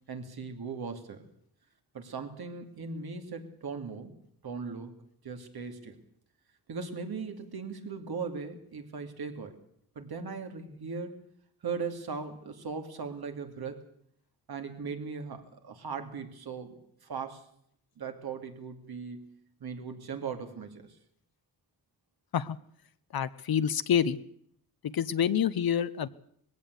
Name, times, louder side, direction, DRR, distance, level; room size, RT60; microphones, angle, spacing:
voice 1, 0.1-1.3 1.9-4.1 4.4-5.0 5.2-6.0 6.7-9.6 9.9-11.2 11.6-13.8 14.5-17.5 18.0-19.3 19.6-21.0, right 5 dB, 80° right, 5 dB, 2.8 m, -38 dB
voice 2, 23.1-24.2 24.8-26.1, left 8 dB, 70° left, 14 dB, 0.8 m, -27 dB
20.0 x 16.0 x 8.3 m, 0.67 s
wide cardioid pair, 130°, 37 cm